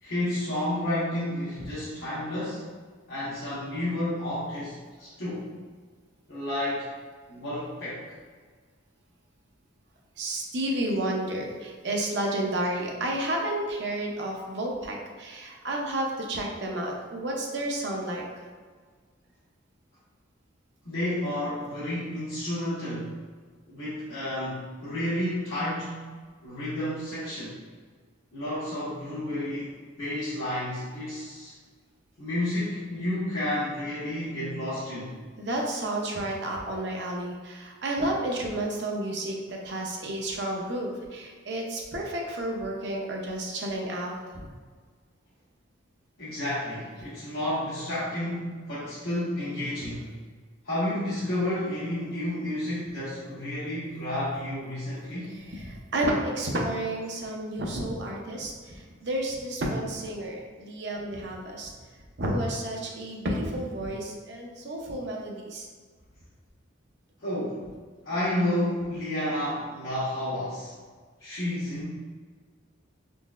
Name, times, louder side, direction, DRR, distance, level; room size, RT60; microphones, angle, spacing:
voice 1, 0.0-2.6 3.1-5.5 6.3-6.9 7.3-8.1 20.8-23.1 23.7-26.1 26.4-27.6 28.3-31.5 32.2-35.1 46.2-50.1 50.6-55.3 67.2-67.7 68.0-70.7 71.2-71.9, left 1 dB, 75° left, -13 dB, 1.1 m, -31 dB
voice 2, 10.2-18.4 35.4-44.5 55.5-61.7 62.2-65.7, right 1 dB, 55° right, -1 dB, 0.6 m, -31 dB
3.8 x 3.1 x 2.4 m, 1.5 s
head